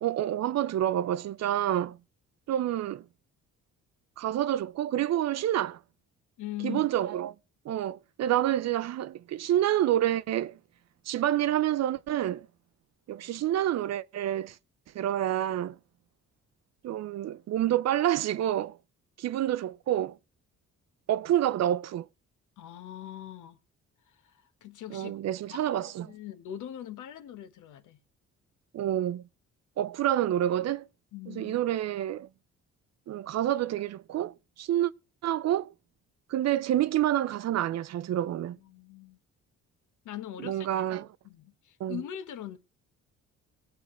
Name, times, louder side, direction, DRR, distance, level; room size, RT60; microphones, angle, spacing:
voice 1, 0.0-2.0 2.5-3.0 4.2-5.8 6.6-7.3 7.7-10.6 11.1-12.5 13.1-14.5 14.9-15.8 16.8-18.8 19.2-20.1 21.1-22.1 24.9-26.1 28.7-29.2 29.8-30.9 31.3-32.3 33.1-34.9 35.2-35.7 36.3-38.6 40.4-41.1 41.8-42.0, right 12 dB, 60° right, 0.5 m, -28 dB
voice 2, 6.4-6.9 22.6-23.6 24.1-25.1 25.5-28.0 31.1-31.6 38.5-39.2 40.0-40.8 41.2-42.6, left 11 dB, 80° left, 1.1 m, -41 dB
22.0 x 7.9 x 3.2 m
cardioid pair, 90°, 30 cm